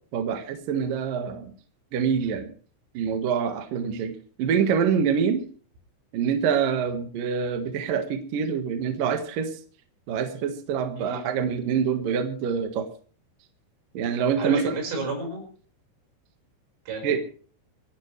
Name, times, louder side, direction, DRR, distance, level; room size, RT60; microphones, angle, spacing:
voice 1, 0.1-1.5 1.9-2.5 2.9-5.5 6.1-9.6 10.1-12.9 13.9-14.7 17.0-17.2, right 7 dB, 60° right, 6 dB, 2.5 m, -26 dB
voice 2, 14.4-15.4 16.9-17.2, right 2 dB, 75° right, 2 dB, 7.9 m, -31 dB
26.5 x 11.5 x 3.3 m, 0.42 s
omnidirectional pair, 5.8 m